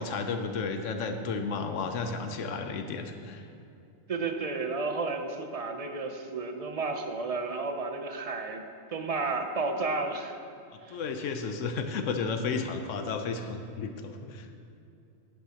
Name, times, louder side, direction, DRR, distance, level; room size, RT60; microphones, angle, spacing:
voice 1, 0.0-3.4 10.7-14.5, left 4 dB, 90° left, 6 dB, 1.0 m, -33 dB
voice 2, 4.1-8.6 8.9-10.4 10.8-11.0, right 3 dB, 40° right, 5 dB, 0.6 m, -32 dB
11.0 x 10.0 x 2.9 m, 2.5 s
omnidirectional pair, 1.2 m